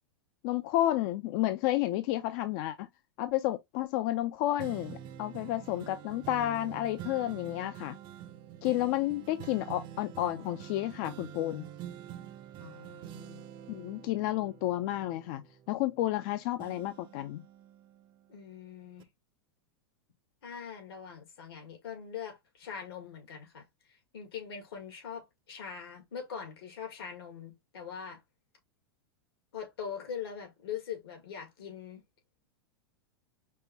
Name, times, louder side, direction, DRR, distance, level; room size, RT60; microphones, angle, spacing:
voice 1, 0.4-2.9 3.2-7.9 8.6-11.7 13.7-17.4, left 14 dB, 50° left, 0.4 m, -31 dB
sound 1, 4.6-16.2 16.6-18.5 19.0-19.1, right 10 dB, 35° right, 0.6 m, -47 dB
voice 2, 12.6-13.4 18.3-19.1 20.4-28.2 29.5-32.0, left 7 dB, 80° left, 1.8 m, -42 dB
5.4 x 2.2 x 2.7 m
hypercardioid pair, 120°, 13 cm